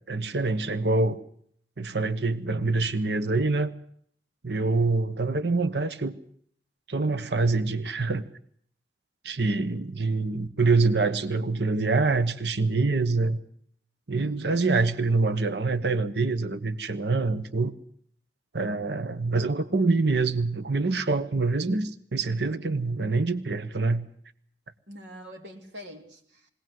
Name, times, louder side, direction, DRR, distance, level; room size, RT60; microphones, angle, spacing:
voice 1, 0.1-1.2 1.8-3.7 4.4-6.1 6.9-8.2 9.2-13.4 14.1-17.7 18.5-24.1, right 3 dB, 70° right, 12 dB, 1.1 m, -25 dB
voice 2, 14.2-14.6 24.9-26.5, equal, 90° right, 3 dB, 3.0 m, -44 dB
21.5 x 18.0 x 7.7 m, 0.63 s
head